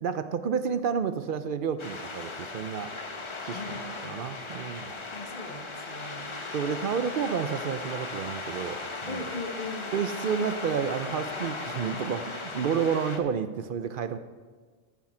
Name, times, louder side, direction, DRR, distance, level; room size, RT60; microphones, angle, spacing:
voice 1, 0.0-2.9 3.4-4.9 6.5-9.3 9.9-14.2, right 7 dB, 60° right, 11 dB, 0.6 m, -30 dB
sound 1, 1.8-13.2, left 3 dB, 30° left, 0.7 m, -37 dB
voice 2, 3.5-4.2 5.1-6.3 9.1-9.9, left 3 dB, 45° left, 4 dB, 1.1 m, -39 dB
14.0 x 6.0 x 4.3 m, 1.4 s
omnidirectional pair, 1.2 m